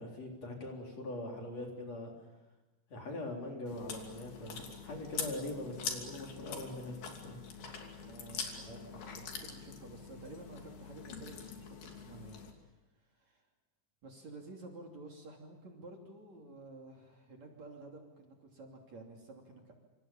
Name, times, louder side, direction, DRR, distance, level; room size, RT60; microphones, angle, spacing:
voice 1, 0.0-2.1 2.9-6.9 7.2-7.4, left 1 dB, 40° left, 1 dB, 4.7 m, -42 dB
Chewing mastication, 3.7-12.5, left 5 dB, 65° left, 4.6 m, -44 dB
voice 2, 8.0-13.5 14.0-19.7, right 2 dB, 45° right, 1 dB, 3.8 m, -52 dB
27.5 x 26.5 x 7.3 m, 1.1 s
omnidirectional pair, 4.9 m